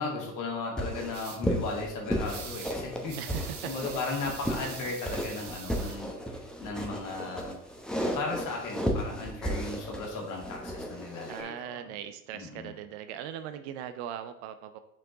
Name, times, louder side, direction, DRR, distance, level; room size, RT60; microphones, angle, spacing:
voice 1, 0.0-6.2 6.6-7.6 8.1-11.9 12.3-12.7, left 3 dB, 45° left, 0 dB, 2.1 m, -36 dB
sound 1, 0.8-11.4, equal, ahead, 1.0 m, -34 dB
sound 2, 1.1-1.4 2.2-2.8 3.1-6.0, right 6 dB, 80° right, 1.0 m, -43 dB
voice 2, 3.1-3.9 11.2-14.8, right 10 dB, 50° right, 10 dB, 0.5 m, -40 dB
6.2 x 4.3 x 3.8 m, 0.83 s
figure-of-eight pair, 75°, 45 cm